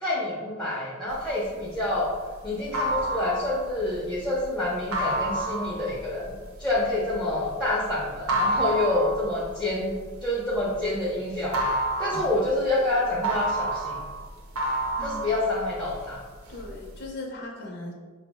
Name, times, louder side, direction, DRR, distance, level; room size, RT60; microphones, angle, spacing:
voice 1, 0.0-2.1 2.4-6.3 6.6-11.6 12.0-14.0 15.0-16.2, left 2 dB, 5° left, -6 dB, 0.5 m, -27 dB
sound 1, 1.2-11.0 11.3-16.1 16.5-17.1, right 1 dB, 80° right, 0.7 m, -29 dB
voice 2, 15.0-15.3 16.5-17.9, left 2 dB, 50° left, 0 dB, 0.6 m, -38 dB
5.3 x 2.0 x 3.4 m, 1.5 s
head